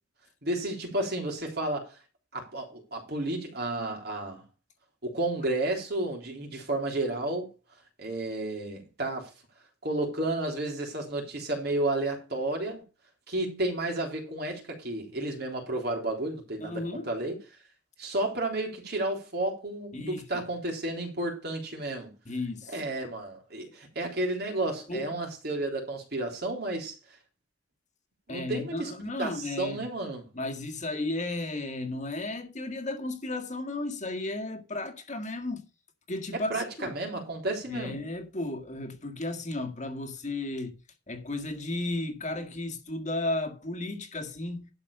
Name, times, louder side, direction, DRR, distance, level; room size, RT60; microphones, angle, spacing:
voice 1, 0.4-2.0 2.3-4.4 5.0-7.5 8.0-9.3 9.8-12.8 13.3-17.4 18.0-22.1 22.7-26.9 28.3-28.9 29.2-30.3 36.3-38.0, right 2 dB, 60° right, 3.6 m, -32 dB
voice 2, 16.6-17.1 19.9-20.2 22.3-22.7 24.9-25.1 28.3-29.9 30.3-35.7 36.1-36.9 37.7-40.8 41.1-44.7, left 2 dB, 40° left, 1.8 m, -34 dB
11.5 x 5.1 x 6.7 m
head